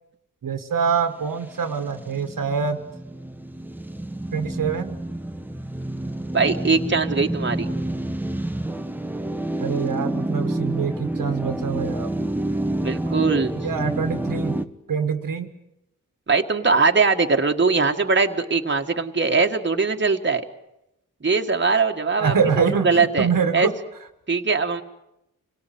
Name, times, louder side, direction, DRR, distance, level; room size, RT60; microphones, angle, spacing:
voice 1, 0.4-2.8 4.3-5.0 9.6-12.1 13.6-14.6 14.9-15.5 22.2-23.7, right 6 dB, 80° right, 8 dB, 1.7 m, -24 dB
sound 1, 1.4-14.7, right 1 dB, 5° right, 1.2 m, -29 dB
voice 2, 6.3-7.7 12.8-13.5 16.3-20.4 21.2-23.3 23.5-23.7 24.3-24.8, right 4 dB, 35° right, 3 dB, 1.7 m, -21 dB
26.0 x 18.0 x 9.4 m, 0.88 s
cardioid pair, 60°, 33 cm